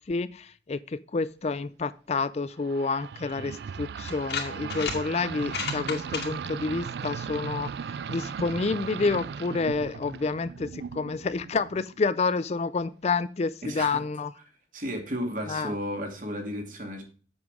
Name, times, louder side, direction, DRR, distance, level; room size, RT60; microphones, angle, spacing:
voice 1, 0.1-14.3 15.5-15.7, left 4 dB, 35° left, 15 dB, 0.4 m, -29 dB
sound 1, 2.6-11.9, right 6 dB, 65° right, 0.3 m, -37 dB
sound 2, 3.3-3.4 4.1-5.0 5.4-6.3, left 6 dB, 70° left, 2.2 m, -32 dB
voice 2, 13.6-14.0 14.7-17.0, equal, 50° right, 3 dB, 2.5 m, -33 dB
7.9 x 7.3 x 4.8 m, 0.40 s
head